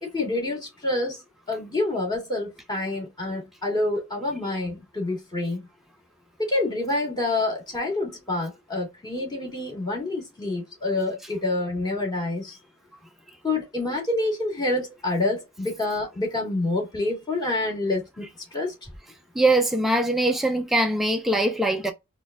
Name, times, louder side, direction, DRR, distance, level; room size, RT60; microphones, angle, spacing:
voice 1, 0.0-1.2 1.5-5.6 6.4-12.6 13.4-18.7, left 2 dB, 20° left, 2.0 m, -27 dB
voice 2, 19.3-21.9, right 1 dB, ahead, 0.4 m, -22 dB
4.2 x 2.3 x 3.5 m
head